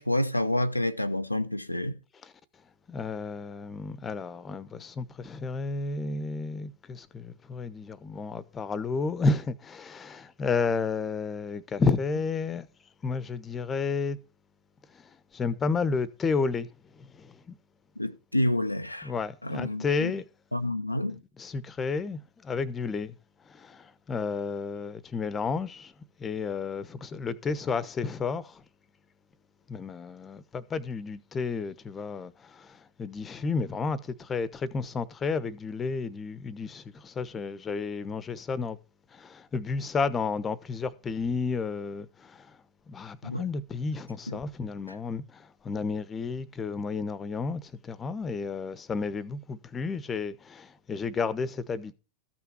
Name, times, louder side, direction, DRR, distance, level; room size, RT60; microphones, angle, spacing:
voice 1, 0.0-2.0 18.0-19.1 19.4-20.1 20.5-21.2 43.2-43.4 44.3-44.4, left 1 dB, 85° left, 0.7 m, -28 dB
voice 2, 2.9-12.7 13.0-14.2 14.9-15.0 15.3-16.7 17.0-17.6 19.0-20.2 21.1-23.1 23.5-25.9 26.2-28.6 29.7-38.8 39.1-42.5 42.9-51.9, left 4 dB, 20° left, 1.0 m, -32 dB
14.0 x 6.0 x 6.8 m
figure-of-eight pair, 90°, 0 cm